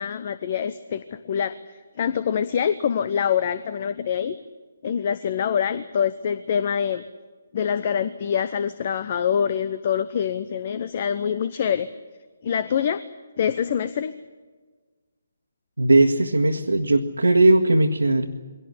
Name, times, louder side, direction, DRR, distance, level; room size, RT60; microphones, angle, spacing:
voice 1, 0.0-4.4 4.8-7.0 7.5-11.9 12.4-13.0 13.4-14.2, left 8 dB, 40° left, 13 dB, 0.9 m, -25 dB
voice 2, 15.8-18.3, right 2 dB, 80° right, 0 dB, 1.7 m, -18 dB
23.0 x 18.0 x 9.7 m, 1.4 s
figure-of-eight pair, 140°, 0 cm